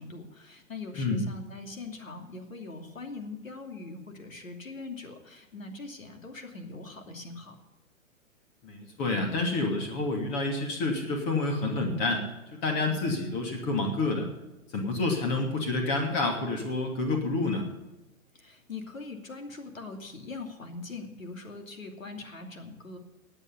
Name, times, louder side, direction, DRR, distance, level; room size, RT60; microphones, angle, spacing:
voice 1, 0.0-7.6 18.3-23.0, left 3 dB, 75° left, 4 dB, 2.8 m, -42 dB
voice 2, 8.6-14.3 14.7-17.7, left 2 dB, 35° left, 2 dB, 2.7 m, -28 dB
17.0 x 9.0 x 5.4 m, 1.0 s
figure-of-eight pair, 115°, 41 cm